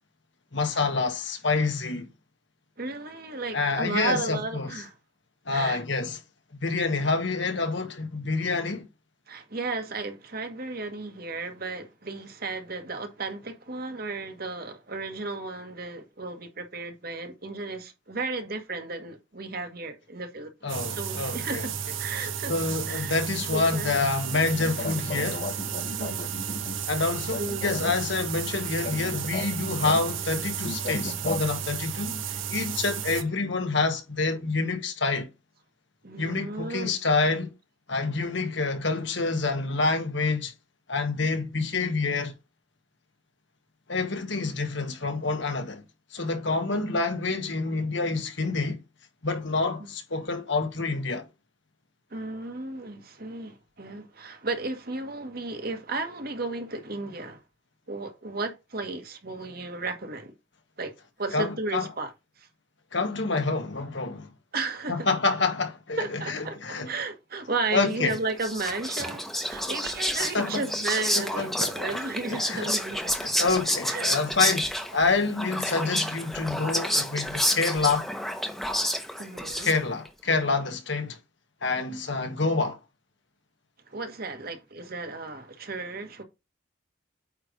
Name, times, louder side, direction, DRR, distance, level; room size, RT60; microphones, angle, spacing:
voice 1, 0.5-2.1 3.5-4.7 5.4-6.2 6.6-8.9 20.6-21.7 22.5-25.4 26.9-32.2 32.5-35.3 36.2-37.5 37.9-40.5 40.9-42.3 43.9-45.8 46.1-48.8 49.2-51.2 61.3-61.9 62.9-64.3 64.9-66.9 67.7-68.2 70.3-70.7 71.1-71.7 72.3-72.7 73.2-78.1 79.6-81.2 81.6-82.8, left 3 dB, 65° left, 1.6 m, -27 dB
voice 2, 2.8-4.9 5.5-5.8 9.3-22.5 22.9-23.2 23.5-24.0 26.0-26.3 27.4-27.7 36.0-37.0 49.8-49.9 52.1-57.4 57.9-60.3 60.8-60.9 61.2-62.1 62.4-62.5 64.5-65.1 66.0-73.1 73.8-74.1 78.8-79.7 83.9-86.2, right 3 dB, 50° right, 1.5 m, -34 dB
sound 1, 20.7-33.2, right 8 dB, 80° right, 1.1 m, -33 dB
sound 2, 24.2-31.6, left 3 dB, 45° left, 1.1 m, -37 dB
Whispering, 68.1-80.1, equal, ahead, 1.0 m, -29 dB
8.9 x 3.3 x 5.2 m
head